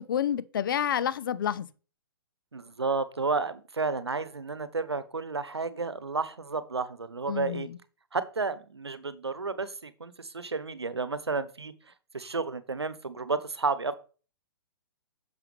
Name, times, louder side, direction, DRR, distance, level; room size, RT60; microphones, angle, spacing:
voice 1, 0.0-1.7 7.3-7.8, left 9 dB, 55° left, 0.9 m, -29 dB
voice 2, 2.5-7.7 8.1-11.7 12.1-13.9, right 4 dB, 80° right, 1.0 m, -31 dB
10.5 x 7.1 x 3.3 m
figure-of-eight pair, 120°, 13 cm